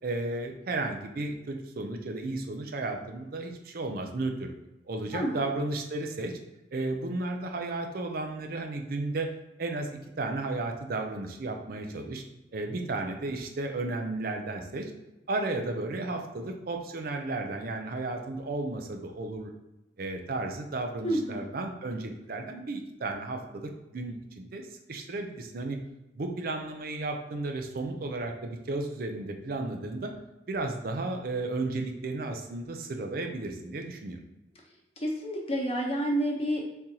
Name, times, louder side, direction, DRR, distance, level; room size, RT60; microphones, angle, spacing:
voice 1, 0.0-4.5 4.9-6.4 6.7-9.3 9.6-12.2 12.5-14.9 15.3-19.5 20.0-25.8 26.2-30.1 30.5-34.2, right 2 dB, 55° right, 4 dB, 0.5 m, -33 dB
voice 2, 5.1-5.4 21.0-21.5 35.0-36.7, equal, 35° left, 0 dB, 0.8 m, -29 dB
4.3 x 3.7 x 2.8 m, 0.96 s
head